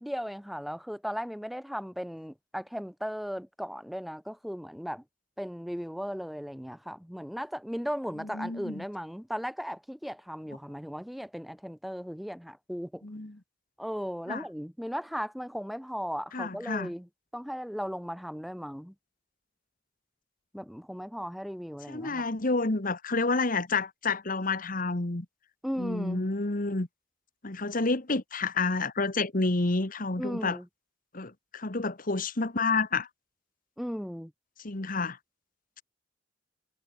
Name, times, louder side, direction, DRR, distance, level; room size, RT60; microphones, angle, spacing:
voice 1, 0.0-5.0 5.4-13.0 13.8-18.9 20.5-22.2 25.6-26.2 30.2-30.7 33.8-34.3, equal, ahead, 1.3 m, -36 dB
voice 2, 8.2-8.8 13.0-13.4 14.3-14.4 16.3-16.9 21.9-25.2 25.8-26.9 27.4-30.6 31.1-33.1 34.6-35.2, left 3 dB, 45° left, 1.5 m, -29 dB
head